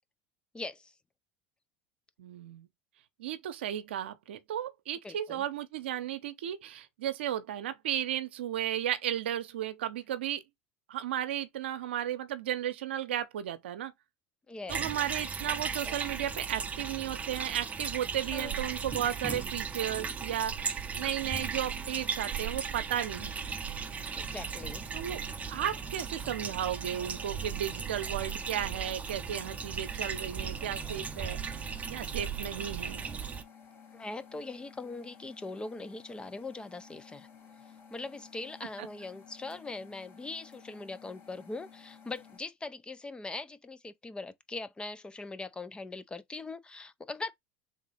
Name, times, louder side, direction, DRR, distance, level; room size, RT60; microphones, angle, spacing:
voice 1, 0.5-0.9 5.0-5.4 14.5-14.9 18.3-18.5 24.2-24.8 33.9-37.3 37.9-47.3, left 3 dB, 15° left, 0.5 m, -41 dB
voice 2, 2.2-2.7 3.2-10.4 10.9-13.9 14.7-23.5 24.9-25.2 25.5-33.0 38.8-38.9, right 11 dB, 90° right, 0.6 m, -34 dB
sound 1, 14.7-33.4, right 6 dB, 25° right, 0.6 m, -36 dB
sound 2, 23.2-42.4, left 7 dB, 40° left, 1.9 m, -55 dB
3.6 x 2.9 x 4.1 m
hypercardioid pair, 95°, 6 cm